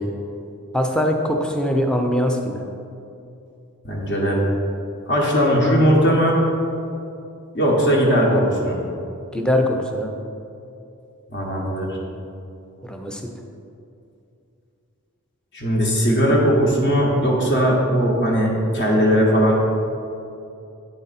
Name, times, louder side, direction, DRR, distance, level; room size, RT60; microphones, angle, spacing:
voice 1, 0.7-2.6 9.3-10.2 12.8-13.2, equal, 5° left, 2 dB, 0.5 m, -22 dB
voice 2, 3.8-4.4 5.1-6.4 7.5-8.8 11.3-12.0 15.5-19.6, equal, 50° left, -3 dB, 1.1 m, -18 dB
8.7 x 3.9 x 4.1 m, 2.6 s
head